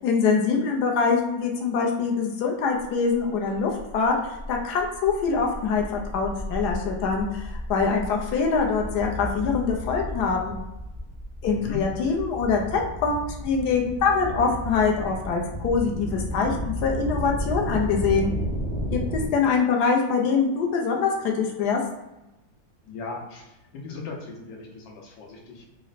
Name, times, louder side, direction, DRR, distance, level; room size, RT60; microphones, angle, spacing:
voice 1, 0.0-4.1 4.5-10.6 11.4-18.3 18.9-21.8, left 5 dB, 70° left, 1 dB, 1.1 m, -24 dB
sound 1, 2.8-2.9 3.2-19.3, equal, 25° left, 0.7 m, -33 dB
voice 2, 11.5-11.8 22.8-25.7, left 4 dB, 85° left, 0 dB, 1.5 m, -37 dB
4.1 x 2.1 x 3.9 m, 0.96 s
omnidirectional pair, 2.0 m